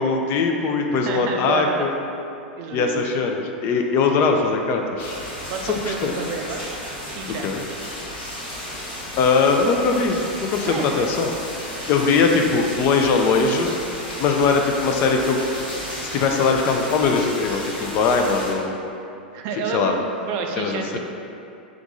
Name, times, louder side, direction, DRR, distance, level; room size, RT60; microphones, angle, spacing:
voice 1, 0.0-2.0 2.7-5.1 5.7-6.1 7.4-7.6 9.2-11.3 11.9-13.7 14.2-15.4 16.1-18.7 19.7-20.0 20.6-21.0, left 4 dB, 45° left, 3 dB, 0.4 m, -20 dB
voice 2, 1.0-1.9 2.6-3.1 5.5-6.6 7.1-7.6 10.6-11.1 19.3-21.0, right 5 dB, 50° right, 3 dB, 0.4 m, -30 dB
sound 1, 5.0-18.5, equal, 80° left, 1.5 m, -33 dB
3.5 x 2.5 x 4.0 m, 2.7 s
hypercardioid pair, 100°, 5 cm